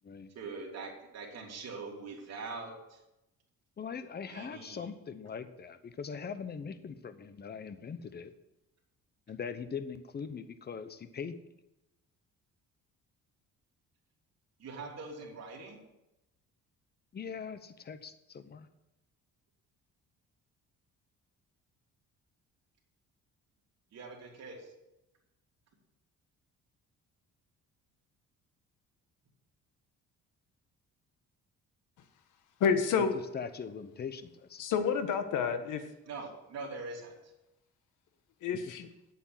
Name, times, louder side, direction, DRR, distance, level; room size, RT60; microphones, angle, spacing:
voice 1, 0.3-3.0 4.3-4.9 14.6-15.8 23.9-24.6 36.1-37.1, right 3 dB, 55° right, -1 dB, 3.3 m, -43 dB
voice 2, 3.8-8.3 9.3-11.4 17.1-18.7 33.0-33.1 33.3-34.9, left 6 dB, 30° left, 12 dB, 0.9 m, -41 dB
voice 3, 32.6-33.1 34.6-35.8 38.4-38.9, left 6 dB, 80° left, 8 dB, 1.4 m, -29 dB
8.6 x 8.3 x 7.7 m, 0.93 s
cardioid pair, 125°, 31 cm